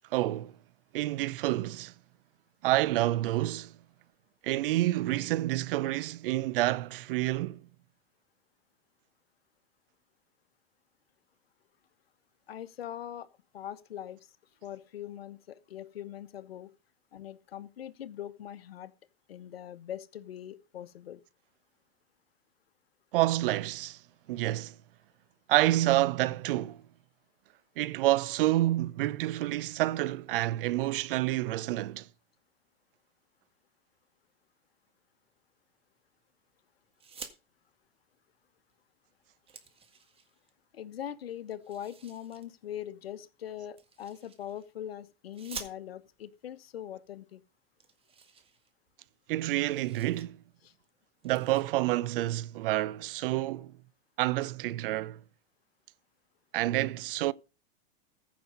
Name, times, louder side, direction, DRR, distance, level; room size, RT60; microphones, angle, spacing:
voice 1, 0.1-0.5 0.9-1.9 2.6-3.7 4.4-7.6 23.1-24.0 24.3-24.7 25.5-26.8 27.8-32.1 49.3-50.4 51.2-53.7 54.2-55.2 56.5-57.3, right 16 dB, 65° right, 0.7 m, -28 dB
voice 2, 12.5-13.3 13.5-14.3 14.6-16.7 17.1-18.9 19.3-21.2 40.7-47.4 50.6-50.7, left 10 dB, 90° left, 1.1 m, -42 dB
sound 1, 36.9-37.4 38.7-38.8 39.1-40.5 41.6-42.5 43.8-44.7 45.3-46.2 47.1-47.2 47.4-47.5 47.8-49.1 49.4-50.3 50.6-50.8 51.2-51.6, right 5 dB, 20° right, 1.7 m, -48 dB
15.0 x 6.1 x 5.2 m
hypercardioid pair, 120°, 29 cm